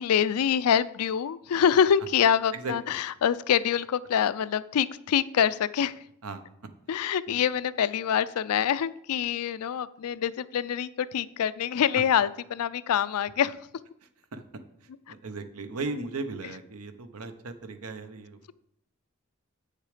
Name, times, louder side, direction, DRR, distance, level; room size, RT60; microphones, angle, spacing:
voice 1, 0.0-6.0 6.9-13.6, left 8 dB, 75° left, 17 dB, 0.4 m, -25 dB
voice 2, 14.8-18.5, right 3 dB, 75° right, 9 dB, 0.9 m, -37 dB
8.1 x 6.6 x 5.0 m, 0.76 s
head